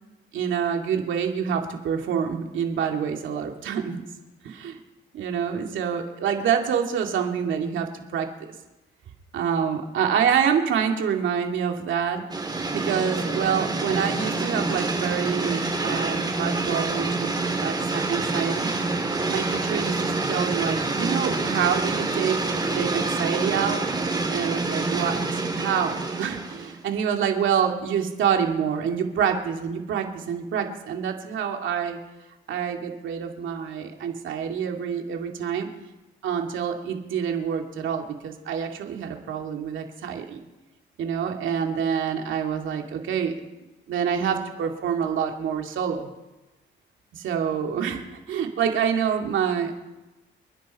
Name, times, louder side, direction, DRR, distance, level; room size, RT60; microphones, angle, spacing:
voice 1, 0.3-4.0 4.4-4.8 5.1-8.3 9.3-12.2 12.7-17.3 17.6-18.7 19.3-23.8 24.3-32.0 32.5-35.7 36.2-40.4 41.0-43.3 43.9-46.1 47.1-48.0 48.3-49.7, right 7 dB, 75° right, 3 dB, 2.4 m, -27 dB
sound 1, 12.3-26.8, right 3 dB, 20° right, 2.9 m, -27 dB
29.0 x 10.5 x 4.2 m, 1.0 s
cardioid pair, 90°, 20 cm